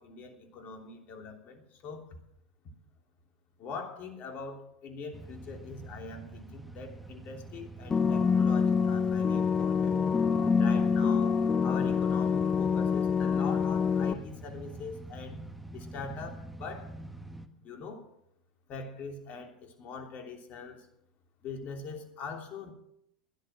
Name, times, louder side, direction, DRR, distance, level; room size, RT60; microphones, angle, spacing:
voice 1, 0.0-2.1 3.6-10.0 10.5-15.4 15.7-16.9 17.6-18.0 18.7-20.8 21.4-22.7, left 4 dB, 45° left, 3 dB, 3.2 m, -42 dB
sound 1, 5.1-17.5, right 1 dB, ahead, 1.4 m, -46 dB
sound 2, 7.9-14.1, left 6 dB, 20° left, 0.8 m, -26 dB
16.0 x 11.0 x 6.2 m, 0.75 s
figure-of-eight pair, 80°, 4 cm